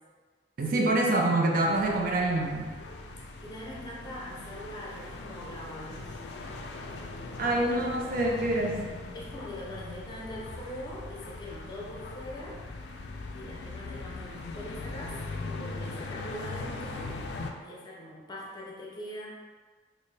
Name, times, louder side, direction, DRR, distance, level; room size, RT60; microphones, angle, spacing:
voice 1, 0.6-2.8 7.4-8.8, right 2 dB, 50° right, 0 dB, 0.4 m, -26 dB
sound 1, 1.7-17.5, left 3 dB, 65° left, 0.3 m, -40 dB
voice 2, 3.3-6.2 9.1-12.6 13.3-15.2 15.5-17.2 17.6-19.3, equal, 25° left, -4 dB, 0.6 m, -42 dB
4.2 x 2.1 x 3.3 m, 1.5 s
head